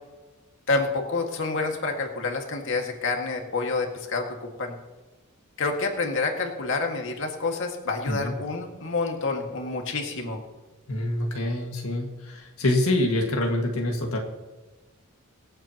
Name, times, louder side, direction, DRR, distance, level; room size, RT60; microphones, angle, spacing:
voice 1, 0.7-4.7 5.6-10.4, left 3 dB, 60° left, 2 dB, 1.9 m, -28 dB
voice 2, 10.9-14.2, left 1 dB, 80° left, 1 dB, 1.9 m, -26 dB
25.0 x 8.8 x 2.9 m, 1.2 s
head